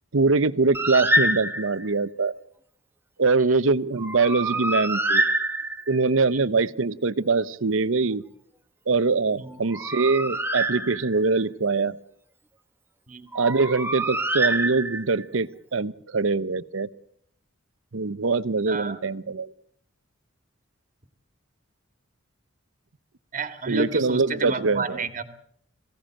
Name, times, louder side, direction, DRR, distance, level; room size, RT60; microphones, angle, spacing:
voice 1, 0.1-2.3 3.2-5.2 5.9-8.2 8.9-12.0 13.3-16.9 17.9-19.5 23.7-25.0, right 4 dB, 75° right, 16 dB, 0.8 m, -23 dB
Bird, 0.7-1.9 4.0-6.1 9.5-11.4 13.3-15.2, right 1 dB, 10° right, 1.0 m, -26 dB
voice 2, 23.3-25.2, right 3 dB, 35° right, 10 dB, 1.9 m, -31 dB
22.5 x 16.5 x 8.8 m, 0.67 s
head